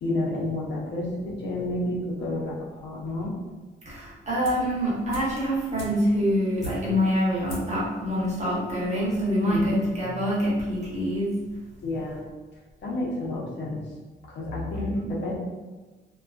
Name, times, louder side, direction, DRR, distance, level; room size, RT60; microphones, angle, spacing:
voice 1, 0.0-3.3 9.4-10.2 11.8-12.2 12.8-13.8 14.3-15.3, left 2 dB, 65° left, -4 dB, 0.8 m, -30 dB
voice 2, 3.9-11.4 14.8-15.1, equal, 35° right, -7 dB, 1.1 m, -26 dB
sound 1, 4.4-4.8 5.1-7.1 7.5-7.8 8.1-8.2, right 1 dB, 85° left, 1.0 m, -39 dB
2.3 x 2.2 x 2.4 m, 1.3 s
cardioid pair, 90°, 20 cm